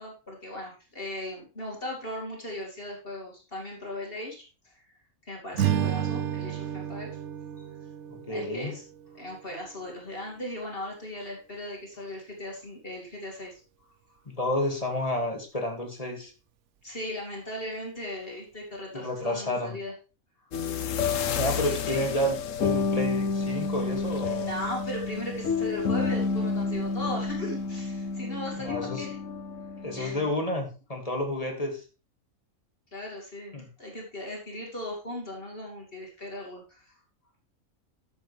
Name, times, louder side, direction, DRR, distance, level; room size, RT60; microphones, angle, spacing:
voice 1, 0.0-4.7 5.3-7.2 8.3-8.8 9.1-13.6 16.8-19.9 21.6-22.1 24.4-29.2 30.0-30.3 32.9-36.9, left 1 dB, 40° left, -1 dB, 2.8 m, -38 dB
Strum, 5.5-10.0, right 10 dB, 65° right, 1.0 m, -32 dB
voice 2, 8.1-8.7 14.3-16.3 18.9-19.8 21.3-24.5 28.6-29.1 29.8-31.8 33.5-33.6, left 1 dB, 25° left, 2 dB, 2.3 m, -30 dB
sound 1, 20.5-30.3, left 5 dB, 65° left, 1.2 m, -30 dB
12.5 x 7.5 x 3.4 m, 0.32 s
omnidirectional pair, 1.4 m